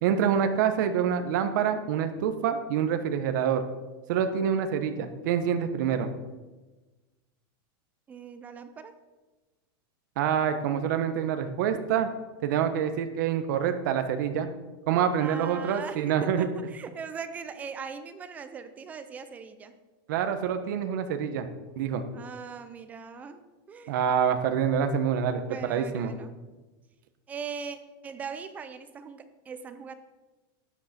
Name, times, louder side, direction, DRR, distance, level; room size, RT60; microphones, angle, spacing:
voice 1, 0.0-3.6 4.1-6.1 10.2-12.1 12.4-14.5 14.9-16.5 20.1-21.5 21.8-22.0 23.9-25.4 25.7-26.1, right 8 dB, 55° right, 8 dB, 1.0 m, -26 dB
voice 2, 8.1-9.0 15.2-19.7 22.1-23.4 23.7-24.0 25.4-26.3 27.3-29.9, right 6 dB, 15° right, 10 dB, 0.4 m, -40 dB
12.5 x 9.2 x 4.3 m, 1.2 s
supercardioid pair, 180°, 12 cm